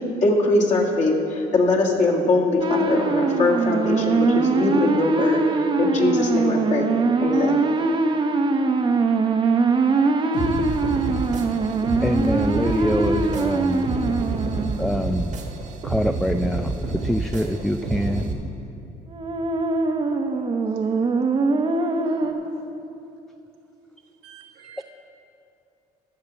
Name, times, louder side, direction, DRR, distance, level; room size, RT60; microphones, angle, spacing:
voice 1, 0.2-5.4 5.8-6.9 7.2-7.6, left 2 dB, 45° left, -2 dB, 1.8 m, -21 dB
sound 1, 2.6-14.9 19.1-22.3, right 3 dB, 30° right, 0.8 m, -22 dB
sound 2, 10.3-18.3, right 3 dB, 45° right, 1.3 m, -29 dB
voice 2, 12.0-13.9 14.6-15.3 15.8-18.3 24.8-24.9, equal, ahead, 7 dB, 0.3 m, -25 dB
voice 3, 24.2-24.8, right 9 dB, 80° right, 0 dB, 1.5 m, -47 dB
11.5 x 6.5 x 7.0 m, 2.7 s
cardioid pair, 110°, 17 cm